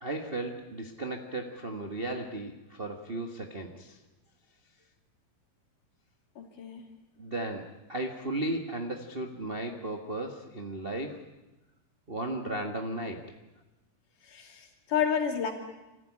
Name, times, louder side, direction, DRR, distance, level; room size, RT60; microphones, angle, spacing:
voice 1, 0.0-4.0 7.2-11.2 12.1-13.2, right 1 dB, 45° right, 2 dB, 0.7 m, -35 dB
voice 2, 6.4-6.8 14.2-15.5, left 7 dB, 65° left, 3 dB, 4.4 m, -30 dB
26.0 x 15.5 x 10.0 m, 1.0 s
omnidirectional pair, 4.0 m